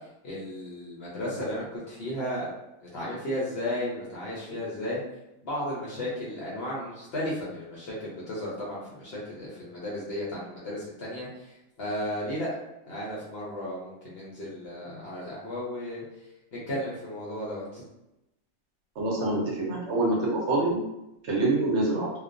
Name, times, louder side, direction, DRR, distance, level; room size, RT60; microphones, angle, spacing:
voice 1, 0.2-2.5 2.8-5.0 5.4-12.5 12.9-16.0 16.5-17.8, left 1 dB, 55° left, -6 dB, 0.7 m, -34 dB
voice 2, 19.0-20.8 21.2-22.1, right 2 dB, 60° right, -3 dB, 0.8 m, -26 dB
2.3 x 2.2 x 2.4 m, 0.92 s
omnidirectional pair, 1.5 m